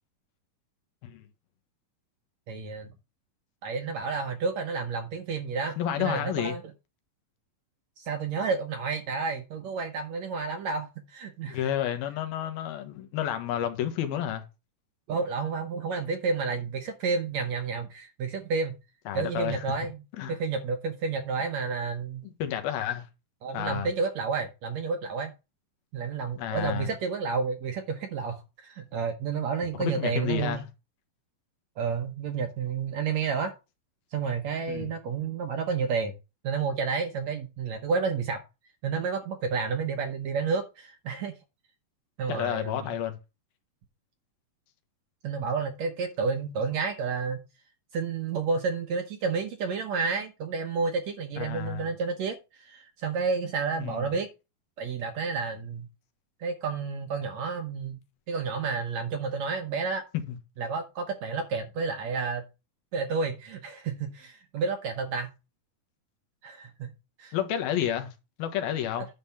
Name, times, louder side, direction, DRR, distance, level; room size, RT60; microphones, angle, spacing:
voice 1, 2.5-2.9 3.6-6.6 8.0-11.6 15.1-18.7 19.1-20.0 20.3-22.2 23.4-25.3 25.9-30.6 31.8-33.5 34.1-36.1 36.4-38.4 38.8-41.3 42.2-42.9 45.2-47.4 47.9-54.3 54.8-55.9 56.4-58.0 58.3-60.0 60.6-62.4 62.9-65.3 66.4-66.9 67.2-67.3, right 5 dB, 70° right, 1.7 m, -30 dB
voice 2, 5.8-6.6 11.4-14.4 19.1-19.6 20.2-20.4 22.2-23.1 23.5-23.9 26.4-26.9 29.7-30.6 34.7-34.9 42.3-43.2 51.4-51.9 53.8-54.1 60.1-60.4 67.3-68.1 68.4-69.1, left 10 dB, 85° left, 3.1 m, -30 dB
10.0 x 3.7 x 7.0 m
omnidirectional pair, 4.2 m